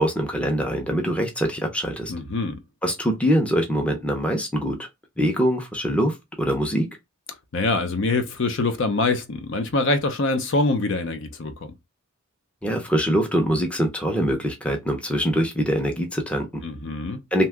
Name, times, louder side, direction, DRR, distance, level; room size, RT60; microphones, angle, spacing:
voice 1, 0.0-2.1 2.8-4.9 5.2-6.9 12.6-16.6 17.3-17.5, equal, 5° left, 0.6 m, -23 dB
voice 2, 2.1-2.6 7.5-11.7 16.6-17.2, left 3 dB, 60° left, 0.6 m, -24 dB
2.8 x 2.2 x 3.3 m
head